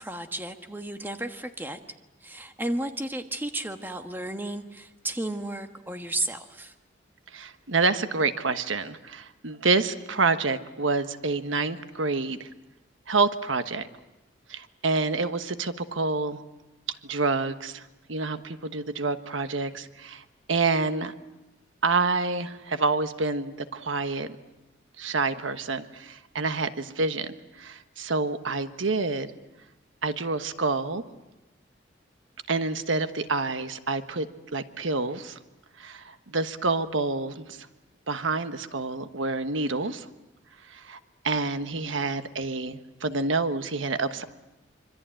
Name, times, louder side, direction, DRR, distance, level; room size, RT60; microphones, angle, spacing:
voice 1, 0.0-1.8 2.2-6.7, right 1 dB, 10° right, 6 dB, 1.4 m, -33 dB
voice 2, 7.3-12.5 13.1-13.9 14.5-16.4 17.0-21.1 21.8-24.4 25.0-29.3 30.0-31.0 32.5-35.4 35.8-37.7 38.1-40.1 40.6-44.2, right 3 dB, 85° right, 10 dB, 1.3 m, -28 dB
25.5 x 25.0 x 9.0 m, 1.0 s
head